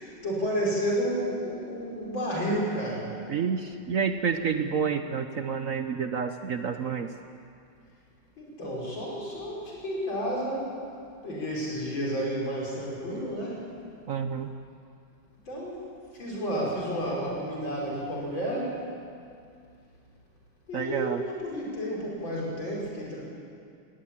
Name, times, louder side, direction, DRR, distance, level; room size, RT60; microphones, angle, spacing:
voice 1, 0.0-3.1 8.4-10.7 11.2-13.7 15.5-15.8 16.1-18.8 20.7-23.2, equal, 65° left, -5 dB, 5.4 m, -31 dB
voice 2, 3.3-7.1 14.1-14.5 20.7-21.2, right 6 dB, 60° right, 8 dB, 0.8 m, -29 dB
19.0 x 18.0 x 8.7 m, 2.4 s
omnidirectional pair, 2.2 m